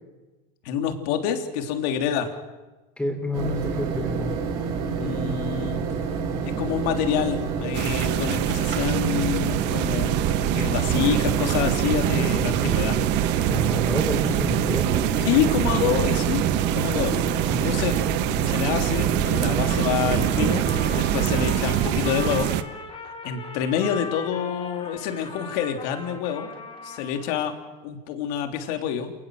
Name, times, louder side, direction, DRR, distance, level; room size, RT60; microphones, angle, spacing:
voice 1, 0.6-2.3 5.0-5.8 6.4-10.1 10.5-13.0 15.2-16.5 16.7-17.2 17.6-17.9 18.5-20.7 20.9-22.5 23.2-26.5 26.8-27.5 27.8-29.1, left 8 dB, 70° left, 5 dB, 3.3 m, -27 dB
voice 2, 3.0-4.4 12.0-13.1 13.5-15.3 17.4-17.7, left 1 dB, 5° left, 4 dB, 4.8 m, -30 dB
sound 1, 3.3-21.5, right 5 dB, 75° right, 7.1 m, -28 dB
sound 2, 7.7-22.6, right 13 dB, 55° right, 1.3 m, -25 dB
Trumpet, 19.7-27.5, left 4 dB, 25° left, 4.7 m, -39 dB
29.0 x 19.5 x 7.8 m, 1.2 s
supercardioid pair, 140°, 21 cm